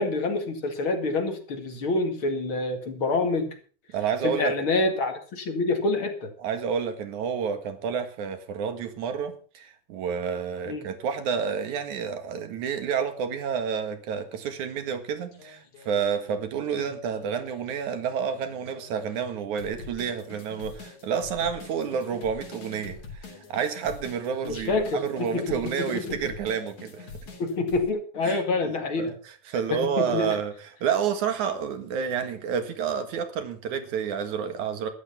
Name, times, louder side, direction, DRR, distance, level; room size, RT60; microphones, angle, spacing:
voice 1, 0.0-3.5 4.2-6.3 10.7-10.8 16.7-16.9 24.4-26.2 27.4-29.1 29.7-30.4, left 3 dB, 45° left, 6 dB, 2.8 m, -27 dB
voice 2, 3.9-4.5 6.4-23.0 23.5-27.1 28.2-28.7 29.0-30.5 30.8-34.9, right 7 dB, 85° right, 8 dB, 3.2 m, -29 dB
sound 1, 15.2-17.8 18.3-27.9, left 4 dB, 80° left, 4.9 m, -44 dB
13.5 x 11.5 x 5.7 m, 0.40 s
omnidirectional pair, 3.3 m